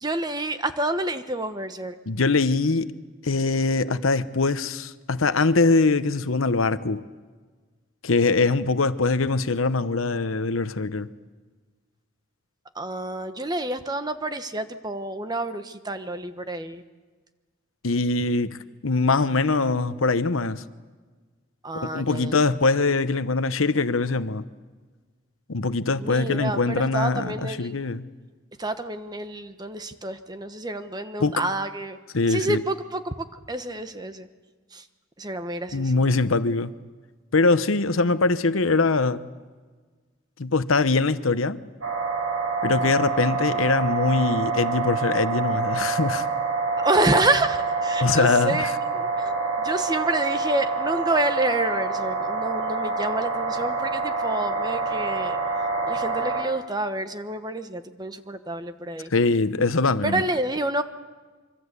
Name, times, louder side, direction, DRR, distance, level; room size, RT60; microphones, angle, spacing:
voice 1, 0.0-1.9 12.7-16.8 21.6-22.5 26.0-27.8 28.6-32.0 32.3-34.3 34.7-34.8 35.2-35.9 42.7-42.9 46.8-49.1 49.6-55.4 55.8-59.1 60.0-60.8, right 2 dB, 20° right, 1.2 m, -28 dB
voice 2, 2.1-2.9 3.2-7.0 8.0-11.1 17.8-18.6 18.8-20.6 21.7-24.4 25.5-28.0 31.2-31.4 32.1-32.6 35.7-36.7 37.3-39.2 40.4-41.6 42.6-46.3 48.0-48.7 59.1-60.2, left 3 dB, 80° left, 1.0 m, -22 dB
sound 1, 41.8-56.4, right 4 dB, 85° right, 5.2 m, -27 dB
26.0 x 24.5 x 8.3 m
head